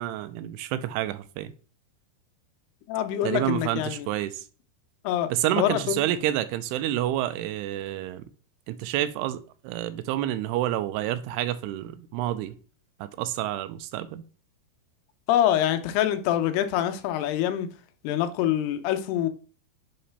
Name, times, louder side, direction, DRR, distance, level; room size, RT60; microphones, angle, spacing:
voice 1, 0.0-1.5 3.2-4.4 5.3-8.2 8.7-12.6 13.0-14.2, right 13 dB, 85° right, 2.6 m, -29 dB
voice 2, 2.9-4.1 5.0-5.3 5.6-6.0 15.3-17.7 18.0-19.3, left 11 dB, 85° left, 2.6 m, -25 dB
7.8 x 3.9 x 3.3 m
omnidirectional pair, 4.7 m